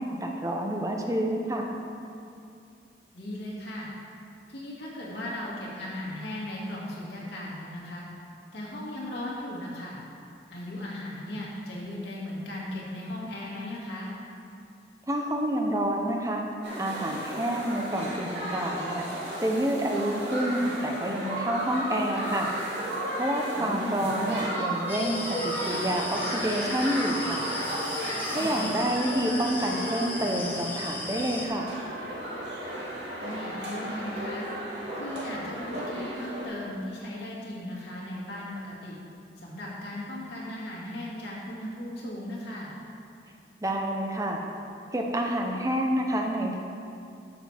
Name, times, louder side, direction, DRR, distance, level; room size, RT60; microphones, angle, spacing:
voice 1, 0.0-1.7 15.1-16.4 16.8-19.1 19.4-22.5 23.1-27.5 28.3-31.7 43.6-44.4 44.9-46.6, right 1 dB, 20° right, 1 dB, 0.7 m, -28 dB
voice 2, 3.1-3.9 4.5-8.0 8.5-10.0 10.5-14.1 23.6-24.1 28.4-28.8 33.2-34.5 34.9-39.0 39.4-42.7, left 1 dB, 70° left, -6 dB, 2.3 m, -37 dB
sound 1, 16.6-36.5, right 1 dB, 75° right, 2.3 m, -34 dB
sound 2, 24.9-31.5, left 1 dB, 10° left, 0.9 m, -36 dB
13.0 x 6.7 x 3.4 m, 2.5 s
head